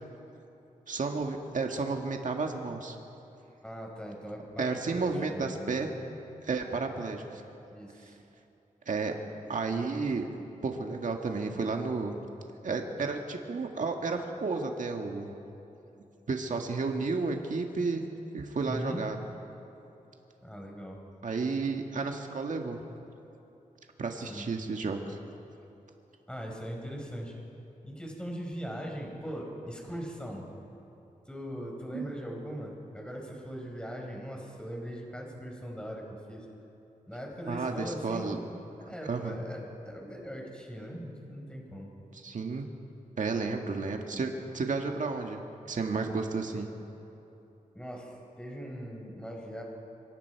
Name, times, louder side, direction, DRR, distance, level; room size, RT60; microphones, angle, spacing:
voice 1, 0.9-3.0 4.6-6.0 6.4-7.4 8.0-8.1 8.9-9.2 9.5-10.3 10.6-12.2 12.6-15.3 16.3-18.0 18.3-19.3 21.2-22.8 24.0-25.2 31.9-32.1 37.5-38.4 38.9-39.4 42.1-42.6 43.2-45.4 45.7-46.7, right 4 dB, 60° right, 3 dB, 1.8 m, -32 dB
voice 2, 3.6-5.7 7.7-8.2 18.7-19.0 20.4-21.0 24.3-24.5 26.3-27.3 27.8-30.5 31.3-36.5 37.1-38.4 38.9-41.9 47.7-49.6, equal, 5° left, 0 dB, 5.0 m, -40 dB
25.0 x 24.5 x 4.7 m, 3.0 s
wide cardioid pair, 85°, 14 cm